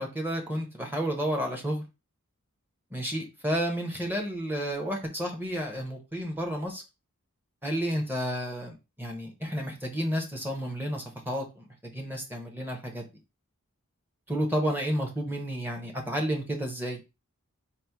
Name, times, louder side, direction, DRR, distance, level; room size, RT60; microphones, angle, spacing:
voice 1, 0.0-1.8 2.9-6.8 7.6-11.7 11.9-13.0 14.3-17.0, equal, 10° right, 1 dB, 0.9 m, -31 dB
4.1 x 2.1 x 4.5 m, 0.27 s
head